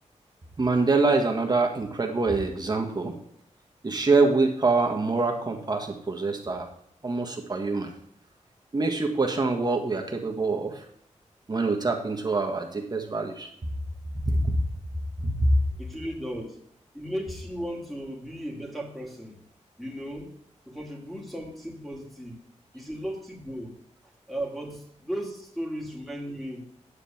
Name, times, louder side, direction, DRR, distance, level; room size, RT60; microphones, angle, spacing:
voice 1, 0.6-3.2 3.8-6.7 7.0-7.9 8.7-10.8 11.5-13.5 14.2-14.6 15.2-15.5, right 3 dB, 35° right, 2 dB, 1.5 m, -25 dB
voice 2, 15.8-16.6 16.9-19.4 19.8-20.4 20.7-22.4 22.7-23.8 24.3-26.7, equal, ahead, -1 dB, 2.7 m, -36 dB
9.9 x 4.1 x 7.2 m, 0.72 s
wide cardioid pair, 105°, 12 cm